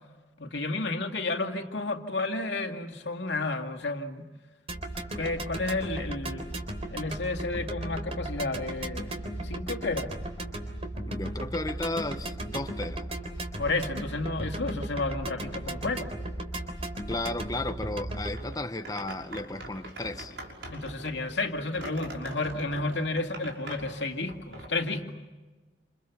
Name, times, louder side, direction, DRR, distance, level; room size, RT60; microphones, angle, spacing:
voice 1, 0.4-4.3 5.1-6.6 6.9-10.1 13.6-16.1 20.7-25.3, left 2 dB, 75° left, 2.3 m, -32 dB
sound 1, 4.7-18.4, right 1 dB, 35° right, 3.6 m, -36 dB
voice 2, 11.1-13.1 17.1-20.4, left 2 dB, 20° left, 1.1 m, -34 dB
sound 2, 18.3-24.7, right 1 dB, 85° right, 6.2 m, -42 dB
28.5 x 28.5 x 7.1 m
head